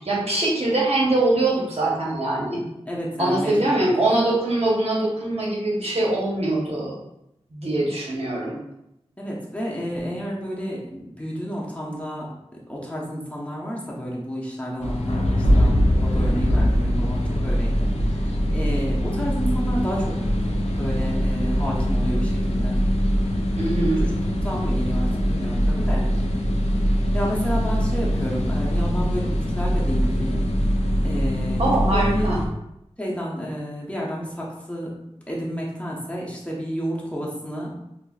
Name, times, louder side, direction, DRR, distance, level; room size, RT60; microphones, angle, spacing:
voice 1, 0.0-2.6 3.2-6.9 7.5-8.6 23.6-24.0 31.6-32.4, right 2 dB, 65° right, -5 dB, 1.0 m, -23 dB
voice 2, 2.9-3.8 9.2-12.3 12.7-22.8 24.0-26.1 27.1-30.4 31.0-32.3 33.0-34.9 35.3-37.8, equal, 10° left, -4 dB, 0.8 m, -30 dB
sound 1, 14.8-32.5, equal, 80° left, 0.5 m, -22 dB
5.5 x 2.1 x 2.3 m, 0.84 s
wide cardioid pair, 50°, 11 cm